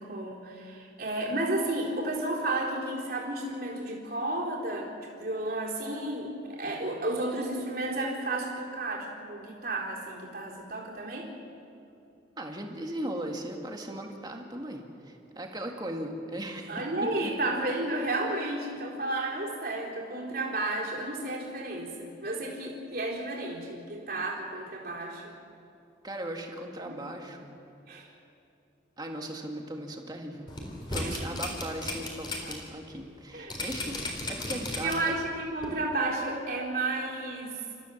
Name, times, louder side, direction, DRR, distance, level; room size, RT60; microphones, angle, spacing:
voice 1, 0.0-11.3 16.7-25.3 26.8-27.0 27.9-28.1 31.0-31.4 32.4-32.5 33.3-33.6 34.8-37.6, right 2 dB, 50° right, -3 dB, 4.1 m, -32 dB
voice 2, 12.4-16.8 26.0-27.6 29.0-30.5 30.9-35.1, right 1 dB, 20° right, 2 dB, 2.0 m, -38 dB
sound 1, 30.5-32.5 32.9-33.0 33.5-35.2 35.6-35.7, left 2 dB, 25° left, 3.8 m, -34 dB
29.5 x 14.5 x 7.2 m, 2.8 s
head